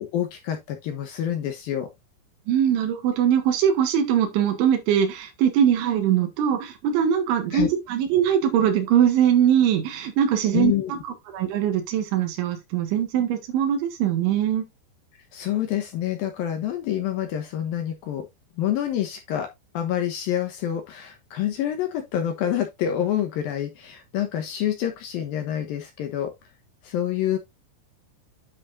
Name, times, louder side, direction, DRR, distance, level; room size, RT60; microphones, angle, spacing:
voice 1, 0.0-1.9 7.5-7.7 10.5-10.9 15.3-18.3 18.6-19.5 19.7-26.3 26.8-27.4, left 11 dB, 70° left, 2.4 m, -27 dB
voice 2, 2.5-11.0 11.3-14.7, right 9 dB, 90° right, 4.0 m, -22 dB
10.0 x 5.6 x 2.6 m
omnidirectional pair, 5.2 m